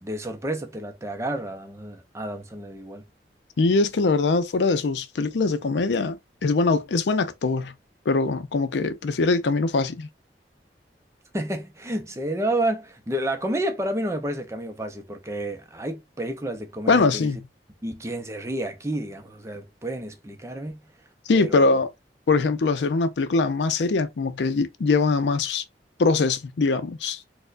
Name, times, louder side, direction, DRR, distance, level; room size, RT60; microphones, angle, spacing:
voice 1, 0.0-3.0 11.3-17.3 17.8-20.8 21.3-21.8, right 1 dB, 15° right, 0.5 m, -30 dB
voice 2, 3.6-7.7 8.1-10.1 16.9-17.4 21.3-21.9 22.3-25.6 26.0-27.2, left 3 dB, 85° left, 0.5 m, -22 dB
4.3 x 2.1 x 2.4 m
head